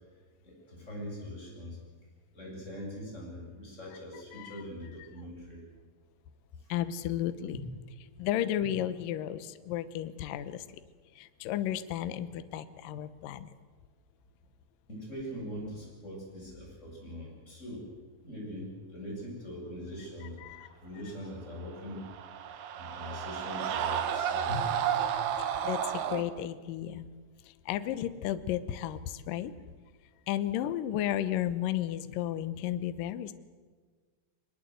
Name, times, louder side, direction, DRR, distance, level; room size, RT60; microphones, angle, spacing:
voice 1, 0.4-1.8 2.3-5.6 6.6-6.7 7.5-7.6 14.9-17.9 18.2-22.1 22.7-25.2, left 1 dB, 15° left, -2 dB, 8.1 m, -42 dB
voice 2, 4.3-4.6 6.7-7.6 8.2-10.8 11.2-13.5 20.4-20.7 25.4-27.1 27.5-29.5 30.3-33.3, left 11 dB, 85° left, 12 dB, 1.9 m, -33 dB
sound 1, 21.8-26.2, right 9 dB, 65° right, 3.0 m, -32 dB
22.5 x 21.0 x 8.0 m, 1.5 s
omnidirectional pair, 5.5 m